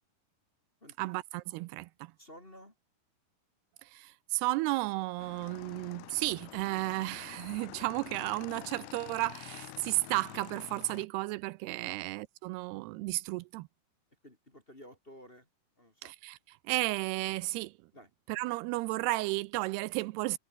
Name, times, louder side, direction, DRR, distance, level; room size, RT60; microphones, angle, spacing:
voice 1, 1.0-2.1 3.8-13.7 16.1-16.4 16.6-17.7 18.3-20.4, right 20 dB, 85° right, 2.6 m, -33 dB
voice 2, 2.2-2.7 11.8-12.0 14.2-15.5 15.8-16.1 17.9-18.1, equal, 15° left, 2.7 m, -53 dB
Motorcycle / Engine, 5.2-11.0, left 20 dB, 85° left, 2.8 m, -48 dB
omnidirectional pair, 4.7 m